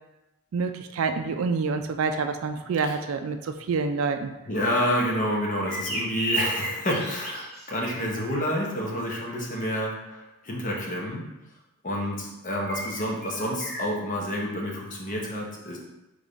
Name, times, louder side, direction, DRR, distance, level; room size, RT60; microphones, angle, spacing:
voice 1, 0.5-4.3, right 4 dB, 65° right, 7 dB, 0.3 m, -27 dB
voice 2, 4.4-11.2 11.8-15.8, equal, 35° left, -2 dB, 0.9 m, -29 dB
sound 1, 5.3-8.4 12.6-13.8, right 2 dB, 5° left, 1.3 m, -34 dB
3.6 x 3.5 x 3.9 m, 1.0 s
head